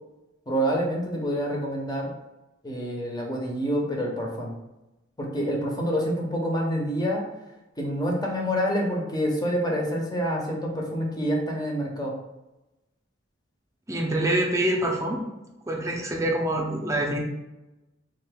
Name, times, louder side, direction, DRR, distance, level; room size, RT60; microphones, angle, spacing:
voice 1, 0.5-2.1 2.6-4.5 5.2-7.2 7.8-12.1, equal, 20° left, -1 dB, 0.7 m, -27 dB
voice 2, 13.9-15.2 15.7-17.2, right 1 dB, 15° right, 0 dB, 0.6 m, -25 dB
3.7 x 2.6 x 3.5 m, 0.98 s
head